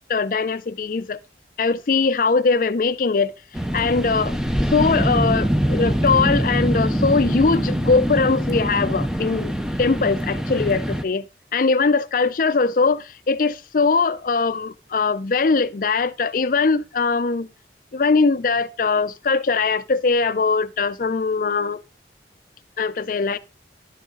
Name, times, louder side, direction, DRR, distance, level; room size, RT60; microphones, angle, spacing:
voice 1, 0.1-1.2 1.6-3.3 3.7-4.3 4.7-9.5 9.8-11.3 11.5-17.5 17.9-21.8 22.8-23.4, left 4 dB, 50° left, 0.5 m, -21 dB
sound 1, 3.5-11.0, equal, 5° right, 0.6 m, -23 dB
11.5 x 6.4 x 3.8 m
head